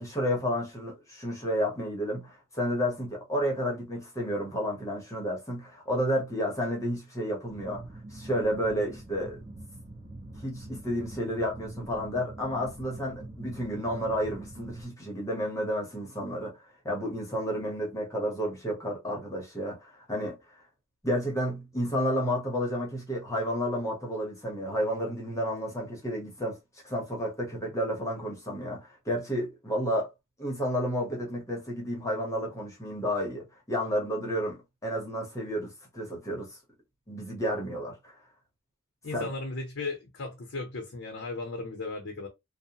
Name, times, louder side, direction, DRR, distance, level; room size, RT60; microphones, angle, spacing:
voice 1, 0.0-7.8 8.1-9.4 10.4-16.5 16.8-20.4 21.0-26.6 26.8-30.1 30.4-36.6 37.1-38.2 39.1-39.3, equal, 15° left, 0.8 m, -31 dB
sound 1, 7.5-14.8, right 1 dB, 35° right, 0.7 m, -44 dB
voice 2, 39.0-42.3, left 3 dB, 60° left, 0.7 m, -36 dB
2.6 x 2.1 x 2.8 m
head